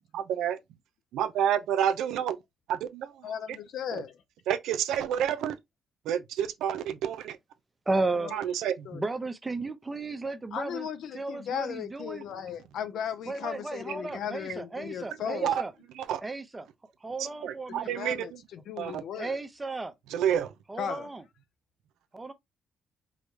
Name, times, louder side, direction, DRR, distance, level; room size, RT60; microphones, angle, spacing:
voice 1, 0.1-0.6 1.1-2.4 2.7-3.1 3.9-4.0 4.5-5.6 6.0-7.4 8.3-8.9 15.4-15.6 15.9-16.2 17.2-18.4 18.8-19.0 20.1-20.5, right 9 dB, 85° right, 0.5 m, -29 dB
voice 2, 3.2-4.2 7.9-8.4 8.9-9.0 10.5-15.5 17.8-19.4 20.8-21.1, left 8 dB, 75° left, 0.6 m, -36 dB
voice 3, 7.9-8.3 8.9-10.8 11.1-12.2 13.3-15.7 16.2-16.7 17.0-17.9 19.2-19.9 20.7-21.2 22.1-22.3, right 3 dB, 20° right, 0.7 m, -34 dB
4.9 x 2.2 x 3.1 m
cardioid pair, 90°, 0 cm